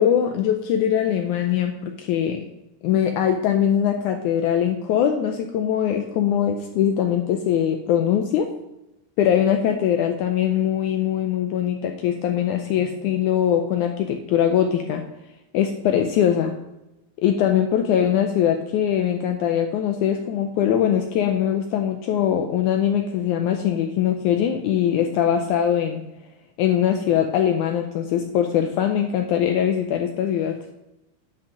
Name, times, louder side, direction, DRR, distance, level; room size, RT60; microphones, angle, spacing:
voice 1, 0.0-2.4 2.8-8.5 9.2-15.0 15.5-16.5 17.2-26.0 26.6-30.6, left 9 dB, 85° left, 5 dB, 1.8 m, -22 dB
10.5 x 6.0 x 5.0 m, 0.95 s
omnidirectional pair, 4.1 m